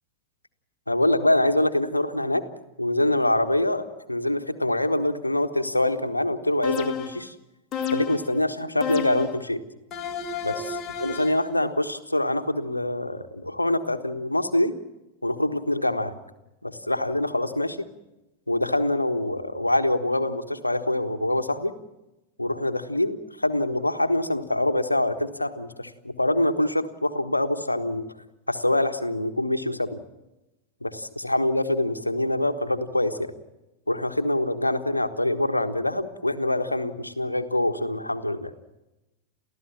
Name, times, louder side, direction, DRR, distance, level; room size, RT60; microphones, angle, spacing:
voice 1, 0.9-2.4 2.8-7.3 7.9-9.6 10.4-14.7 15.2-16.1 16.6-17.8 18.5-21.7 22.4-28.0 28.5-30.0 30.8-33.3 33.9-38.5, left 1 dB, 85° left, 9 dB, 1.4 m, -25 dB
sound 1, 6.6-7.3 7.7-8.3 8.8-9.4 9.9-11.5, left 6 dB, 30° left, 2.1 m, -31 dB
29.5 x 15.0 x 7.3 m, 0.99 s
figure-of-eight pair, 90°, 0 cm